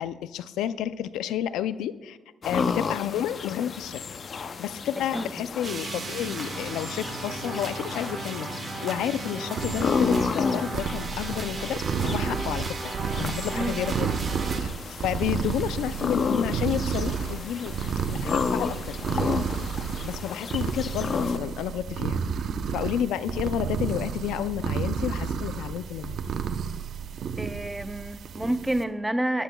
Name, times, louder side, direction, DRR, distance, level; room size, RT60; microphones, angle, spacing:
voice 1, 0.0-2.2 2.5-4.0 4.6-12.9 13.2-14.1 14.5-17.7 18.1-19.3 20.0-22.2 22.7-26.2, left 10 dB, 90° left, 0.4 m, -31 dB
sound 1, 2.4-21.4, left 5 dB, 45° left, 0.6 m, -32 dB
voice 2, 5.0-5.5 13.5-13.9 27.4-29.4, right 1 dB, 5° right, 0.6 m, -29 dB
sound 2, 5.6-14.6, right 4 dB, 40° right, 1.3 m, -36 dB
sound 3, 9.6-28.8, right 6 dB, 65° right, 0.7 m, -31 dB
17.5 x 12.0 x 2.3 m
cardioid pair, 90°, 0 cm